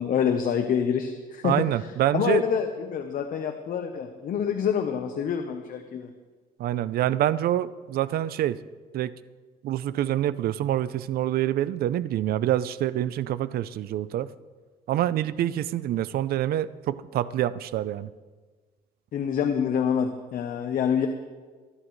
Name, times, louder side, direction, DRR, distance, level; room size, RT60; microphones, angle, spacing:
voice 1, 0.0-1.6 2.1-6.1 19.1-21.1, left 7 dB, 55° left, 6 dB, 1.0 m, -26 dB
voice 2, 1.4-2.4 6.6-8.6 8.9-9.1 9.6-14.3 14.9-18.1, right 12 dB, 65° right, 16 dB, 0.6 m, -26 dB
23.5 x 11.5 x 3.2 m, 1.4 s
cardioid pair, 110°, 17 cm